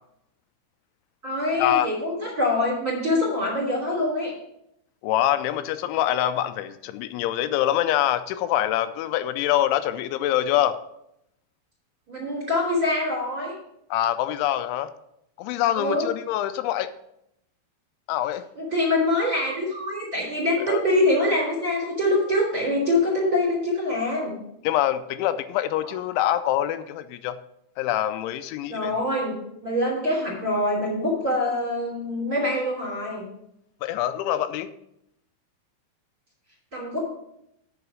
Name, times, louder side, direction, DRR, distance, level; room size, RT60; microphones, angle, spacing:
voice 1, 1.2-4.3 12.1-13.6 15.7-16.1 18.6-24.4 25.8-25.9 28.7-33.2 36.7-37.0, left 1 dB, 25° right, -4 dB, 2.7 m, -24 dB
voice 2, 5.0-10.8 13.9-14.9 15.4-16.9 18.1-18.4 20.7-20.8 24.6-27.4 27.8-28.9 33.8-34.7, left 12 dB, 85° left, 11 dB, 2.9 m, -25 dB
8.0 x 5.8 x 6.1 m, 0.79 s
omnidirectional pair, 5.3 m